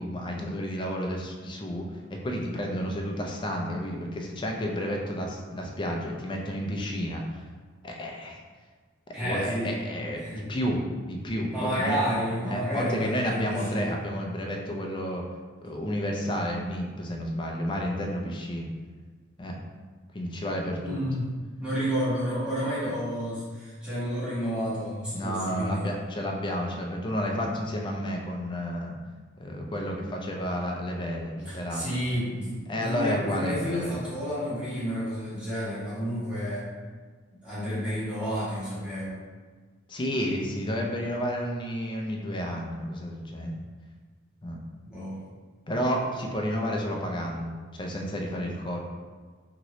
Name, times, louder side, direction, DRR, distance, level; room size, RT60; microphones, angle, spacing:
voice 1, 0.0-7.2 7.8-8.4 9.2-12.0 12.4-15.2 15.6-18.7 19.4-19.6 20.1-21.0 25.1-28.9 29.4-31.8 32.7-33.9 39.9-43.6 44.4-44.6 45.7-48.8, equal, 25° left, 0 dB, 0.4 m, -31 dB
voice 2, 9.1-9.8 10.2-10.4 11.5-13.9 20.8-21.3 21.6-25.9 31.5-36.6 37.4-39.1 44.8-45.2, equal, 5° right, -11 dB, 1.2 m, -30 dB
2.9 x 2.7 x 3.0 m, 1.5 s
head